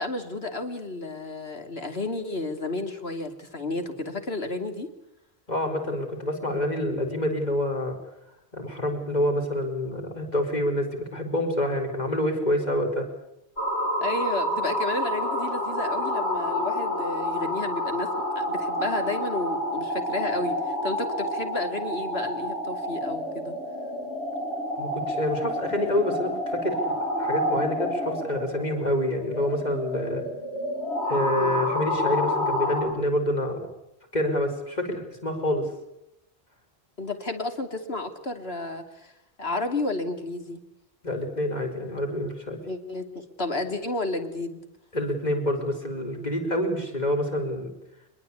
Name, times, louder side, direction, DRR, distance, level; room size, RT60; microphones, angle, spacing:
voice 1, 0.0-4.9 14.0-18.1 18.3-23.5 31.4-31.7 37.0-39.1 39.4-40.6 42.7-44.6, left 2 dB, 65° left, 6 dB, 3.0 m, -32 dB
voice 2, 5.5-7.9 8.5-13.0 24.8-26.9 27.2-30.2 31.1-33.6 34.1-35.6 41.0-42.6 44.9-47.7, left 1 dB, 40° left, 4 dB, 4.8 m, -27 dB
sound 1, 13.6-32.8, left 1 dB, 85° left, 8.1 m, -29 dB
24.0 x 21.5 x 8.5 m, 0.83 s
omnidirectional pair, 1.1 m